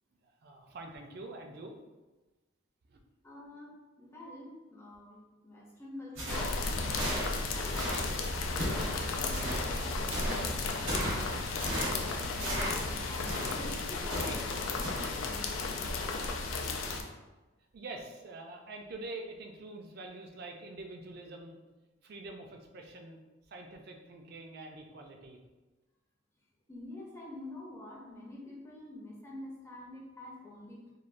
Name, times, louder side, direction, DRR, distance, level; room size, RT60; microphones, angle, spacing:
voice 1, 0.4-1.8 2.9-3.0 17.7-21.6 22.0-23.2 23.5-25.4, right 2 dB, 50° right, 2 dB, 0.3 m, -45 dB
voice 2, 3.2-8.1 8.6-11.3 11.7-16.0 26.7-30.9, left 1 dB, 15° left, -3 dB, 0.4 m, -48 dB
sound 1, 6.1-14.5 14.8-15.1, equal, 80° right, 1.0 m, -36 dB
sound 2, 6.3-17.0, left 3 dB, 90° left, 0.4 m, -34 dB
3.1 x 2.1 x 2.5 m, 1.1 s
head